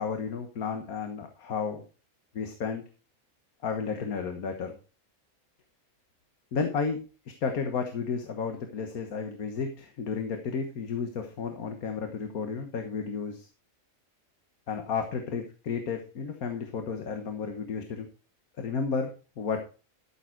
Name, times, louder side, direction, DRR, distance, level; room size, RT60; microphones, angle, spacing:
voice 1, 0.0-1.8 2.3-2.8 3.6-4.8 6.5-7.0 7.4-13.5 14.7-18.1 18.6-19.6, left 5 dB, 90° left, 5 dB, 1.7 m, -32 dB
12.5 x 7.3 x 4.5 m, 0.35 s
omnidirectional pair, 1.5 m